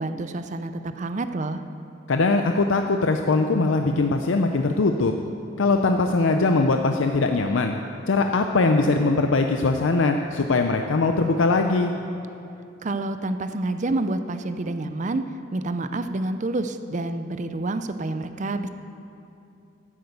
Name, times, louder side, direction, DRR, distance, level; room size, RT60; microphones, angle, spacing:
voice 1, 0.0-1.6 12.8-15.2 15.5-18.7, right 2 dB, 40° right, 9 dB, 0.5 m, -28 dB
voice 2, 2.1-5.1 5.6-7.8 8.1-11.9, left 3 dB, 75° left, 5 dB, 0.5 m, -21 dB
12.5 x 8.0 x 8.0 m, 2.7 s
head